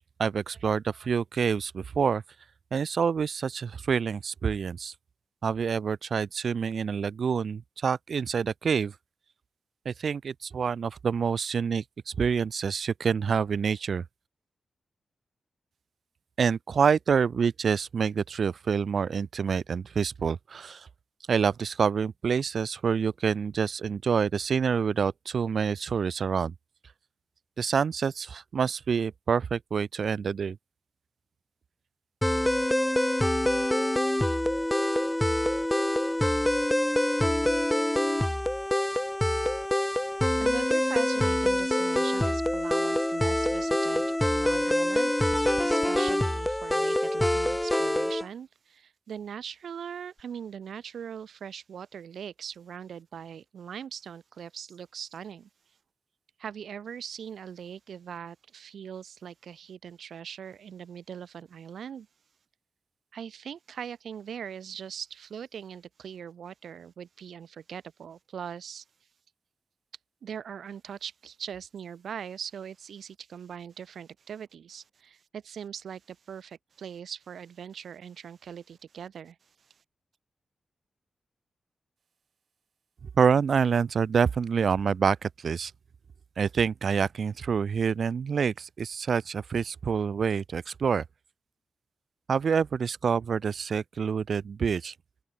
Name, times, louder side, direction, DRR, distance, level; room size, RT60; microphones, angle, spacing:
voice 1, 0.2-2.2 2.7-4.9 5.4-8.9 9.8-14.0 16.4-20.9 21.3-26.5 27.6-30.6 83.2-85.7 86.4-91.0 92.3-94.9, right 6 dB, 65° right, 1.3 m, -27 dB
sound 1, 32.2-48.3, left 1 dB, 10° left, 2.3 m, -25 dB
voice 2, 40.4-55.5 56.4-62.1 63.1-68.8 70.2-79.4, right 8 dB, 85° right, 6.6 m, -41 dB
open air
cardioid pair, 90°, 0 cm